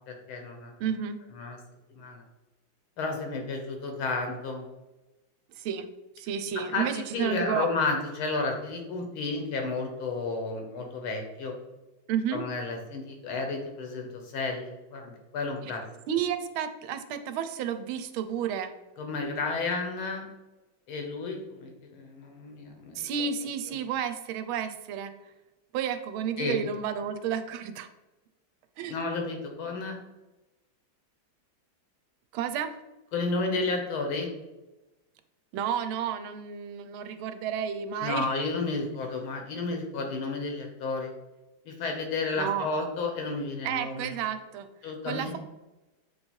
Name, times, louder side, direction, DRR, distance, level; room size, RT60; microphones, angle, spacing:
voice 1, 0.1-0.8 1.3-1.6 1.9-2.2 3.0-4.7 6.6-11.6 12.3-15.8 19.0-20.3 20.9-23.1 23.7-23.8 26.4-26.6 28.9-30.0 33.1-34.3 38.0-41.1 41.7-44.2 44.8-45.3, left 3 dB, 90° left, 3 dB, 2.0 m, -32 dB
voice 2, 0.8-1.2 5.6-5.9 6.2-7.7 12.1-12.4 15.6-15.7 16.1-18.7 23.0-25.1 25.7-27.9 28.8-29.0 32.3-32.7 35.5-38.3 42.4-42.7 43.6-44.7 45.1-45.4, right 8 dB, 90° right, 9 dB, 1.4 m, -31 dB
7.7 x 3.2 x 4.4 m, 1.1 s
omnidirectional pair, 2.2 m